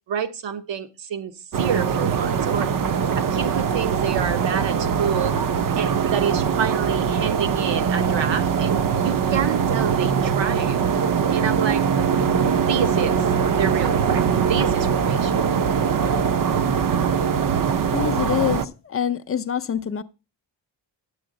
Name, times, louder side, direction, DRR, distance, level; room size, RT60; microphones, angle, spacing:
voice 1, 0.1-2.7 3.1-5.4 5.8-10.8 11.3-11.9 12.5-13.2 13.5-15.3, right 8 dB, 75° right, 1.0 m, -28 dB
sound 1, 1.5-18.6, right 7 dB, 45° right, 0.6 m, -22 dB
voice 2, 17.9-20.0, left 9 dB, 30° left, 0.5 m, -25 dB
10.0 x 7.9 x 3.8 m
wide cardioid pair, 160°, 45 cm